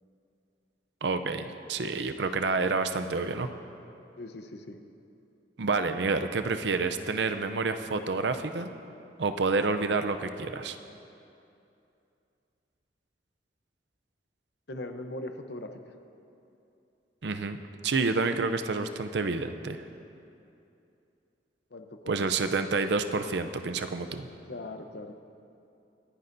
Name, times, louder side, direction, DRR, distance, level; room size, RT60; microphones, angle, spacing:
voice 1, 1.0-3.5 5.6-8.7 9.2-10.8 17.2-17.6 17.8-19.8 22.1-24.3, right 4 dB, 70° right, 8 dB, 0.6 m, -29 dB
voice 2, 4.2-4.8 14.7-15.9 21.7-22.2 24.5-25.2, left 2 dB, 65° left, 6 dB, 0.8 m, -40 dB
25.5 x 9.8 x 2.7 m, 2.7 s
head